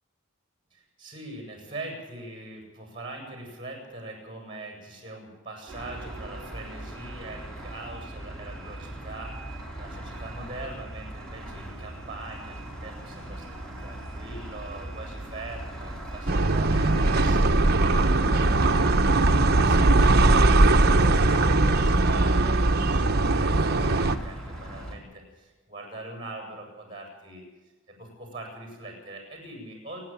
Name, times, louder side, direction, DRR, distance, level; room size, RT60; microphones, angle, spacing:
voice 1, 0.7-27.5 27.9-30.0, right 2 dB, 25° right, 2 dB, 7.5 m, -42 dB
sound 1, 5.7-25.0, right 1 dB, 5° left, 3.9 m, -39 dB
sound 2, 16.3-24.2, right 2 dB, 50° right, 1.0 m, -20 dB
28.5 x 10.0 x 9.1 m, 1.2 s
head